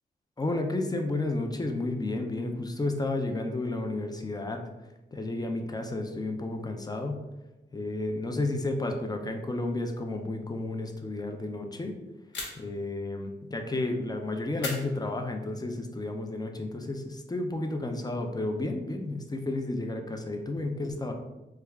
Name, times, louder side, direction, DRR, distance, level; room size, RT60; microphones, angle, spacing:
voice 1, 0.4-4.6 5.1-7.2 7.7-12.0 12.6-21.1, left 2 dB, 20° left, 4 dB, 0.5 m, -32 dB
sound 1, 12.3-12.9 14.6-15.6, left 2 dB, 70° left, 0.8 m, -39 dB
3.3 x 2.3 x 3.4 m, 1.0 s
wide cardioid pair, 75°, 20 cm